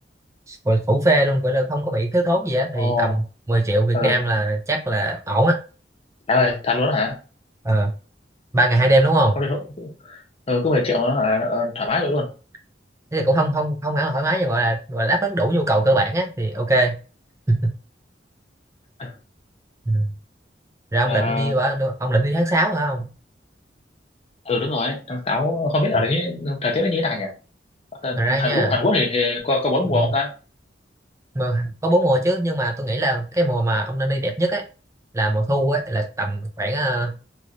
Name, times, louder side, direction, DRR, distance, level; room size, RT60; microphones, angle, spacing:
voice 1, 0.5-5.6 7.6-7.9 8.5-9.4 13.1-17.0 17.5-17.7 19.9-20.1 20.9-23.0 28.2-28.7 29.9-30.1 31.3-34.6 35.1-37.1, right 1 dB, 15° right, 3 dB, 0.5 m, -21 dB
voice 2, 2.8-3.2 3.9-4.2 6.3-7.2 9.4-10.2 10.5-12.3 19.0-19.1 21.0-21.5 24.4-27.3 28.0-30.3, left 2 dB, 35° left, 1 dB, 0.9 m, -22 dB
3.1 x 3.0 x 2.5 m, 0.35 s
head